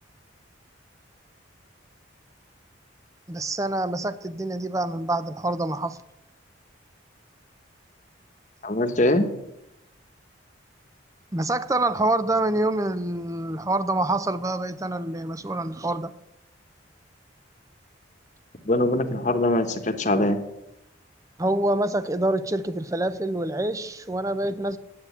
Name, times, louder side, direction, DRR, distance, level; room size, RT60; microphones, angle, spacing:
voice 1, 3.3-6.0 11.3-16.1 21.4-24.8, right 2 dB, 15° right, 0.5 m, -26 dB
voice 2, 8.6-9.3 18.6-20.4, left 1 dB, 40° left, 1.1 m, -22 dB
9.4 x 8.1 x 8.2 m
head